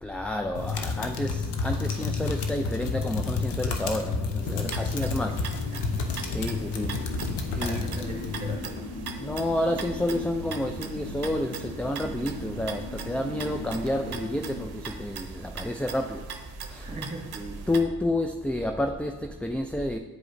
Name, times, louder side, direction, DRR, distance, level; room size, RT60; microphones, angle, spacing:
voice 1, 0.0-5.4 6.3-7.0 7.5-7.8 9.2-16.3 16.7-16.9 17.7-20.0, left 1 dB, 5° left, 0.3 m, -30 dB
sound 1, 0.5-8.5, left 4 dB, 80° left, 0.8 m, -30 dB
sound 2, 4.4-17.8, right 6 dB, 65° right, 0.7 m, -41 dB
sound 3, 6.8-14.7, left 2 dB, 55° left, 1.3 m, -39 dB
voice 2, 7.6-8.9 13.3-13.8 16.8-17.6, right 2 dB, 15° right, 2.3 m, -39 dB
9.5 x 4.9 x 2.6 m
cardioid pair, 50°, 41 cm